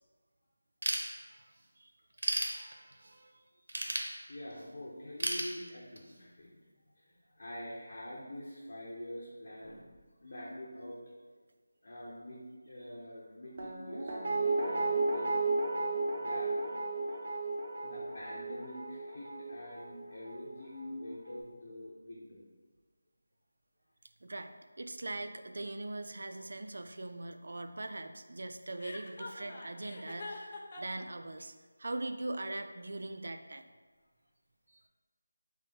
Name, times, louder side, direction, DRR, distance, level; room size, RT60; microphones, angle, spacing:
Ratchet pawl / Tools, 0.8-1.6 2.0-3.1 3.7-4.7 5.2-6.2, right 1 dB, 75° right, 0.7 m, -34 dB
voice 1, 2.4-3.4 24.2-31.5 31.8-33.6 34.7-34.8, right 2 dB, 60° right, 8 dB, 0.3 m, -41 dB
voice 2, 4.3-6.6 7.0-9.9 10.2-11.0 11.8-15.6 15.9-16.7 17.8-22.4, left 1 dB, 50° left, -7 dB, 0.8 m, -45 dB
Guitar, 13.6-20.6 20.9-21.0, right 3 dB, 40° right, 0.7 m, -34 dB
Chuckle chortle, 28.8-31.0, left 2 dB, 30° left, 0.4 m, -44 dB
4.6 x 2.0 x 4.4 m, 1.4 s
figure-of-eight pair, 170°, 0 cm